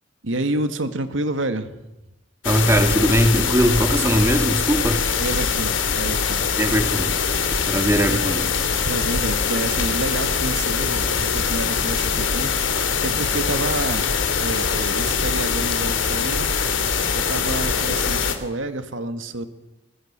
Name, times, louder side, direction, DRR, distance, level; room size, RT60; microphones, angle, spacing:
voice 1, 0.2-1.7 5.2-6.4 8.9-14.0 14.4-16.8 17.1-19.5, right 2 dB, 85° right, 9 dB, 2.1 m, -29 dB
sound 1, 2.4-18.4, left 6 dB, 85° left, 2.9 m, -23 dB
voice 2, 2.4-5.1 6.6-7.1 7.7-8.5, equal, 15° right, 7 dB, 2.1 m, -20 dB
25.5 x 21.0 x 7.5 m, 0.97 s
head